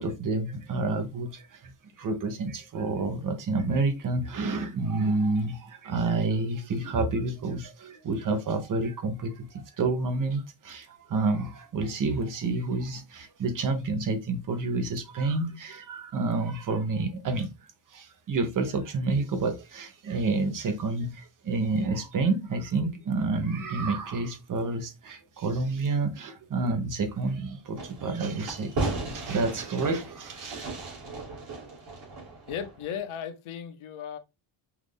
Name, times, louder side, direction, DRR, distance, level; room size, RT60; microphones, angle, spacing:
voice 1, 0.0-1.7 2.0-17.5 17.9-28.7 29.1-30.7, right 3 dB, 40° right, 0.9 m, -29 dB
Fireworks, 27.8-33.0, right 2 dB, 75° right, 3.0 m, -36 dB
voice 2, 32.5-34.2, left 8 dB, 90° left, 0.9 m, -36 dB
5.9 x 2.6 x 3.3 m
cardioid pair, 175°, 48 cm